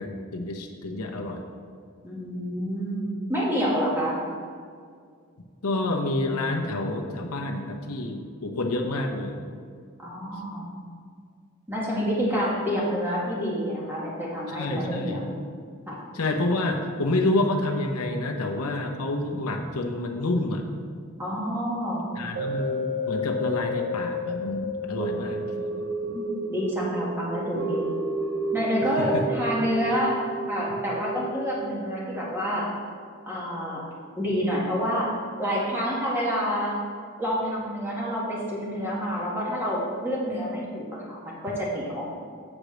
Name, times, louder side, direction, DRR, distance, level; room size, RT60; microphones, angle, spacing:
voice 1, 0.0-1.4 5.6-9.4 14.5-15.2 16.1-20.6 22.2-25.9 29.0-29.2, left 2 dB, 85° left, 2 dB, 0.9 m, -28 dB
voice 2, 2.0-4.2 10.0-10.7 11.7-15.2 15.9-16.0 21.2-22.2 26.1-27.9 28.5-32.7 33.2-33.8 34.2-35.1 35.4-36.8 37.2-42.1, equal, 10° right, -6 dB, 1.8 m, -28 dB
sound 1, 22.4-32.7 33.2-33.3, equal, 80° right, 1.2 m, -31 dB
7.3 x 5.0 x 6.5 m, 2.1 s
head